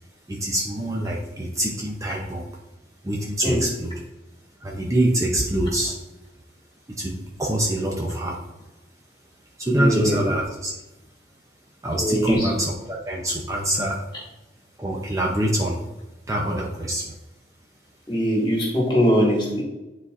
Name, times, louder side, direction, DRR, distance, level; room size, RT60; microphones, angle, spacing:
voice 1, 0.3-2.5 3.0-3.9 4.6-6.0 7.0-8.4 9.6-10.7 11.8-14.0 14.8-15.8 16.3-17.2, right 1 dB, 20° right, -1 dB, 0.6 m, -25 dB
voice 2, 9.7-10.2 12.0-12.5 18.1-19.6, equal, 25° left, -3 dB, 1.9 m, -21 dB
9.6 x 4.1 x 2.5 m, 1.0 s
head